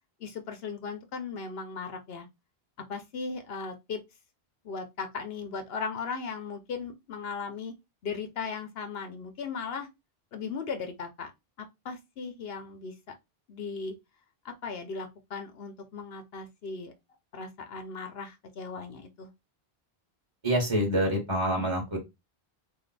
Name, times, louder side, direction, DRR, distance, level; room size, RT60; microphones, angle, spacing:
voice 1, 0.2-2.3 2.9-4.0 4.6-7.7 8.0-9.9 10.3-11.3 11.6-12.9 13.5-13.9 14.4-16.9 17.3-19.3, left 5 dB, 75° left, 0.9 m, -37 dB
voice 2, 20.4-22.0, equal, 30° right, 1.2 m, -26 dB
3.3 x 2.7 x 3.9 m
omnidirectional pair, 1.0 m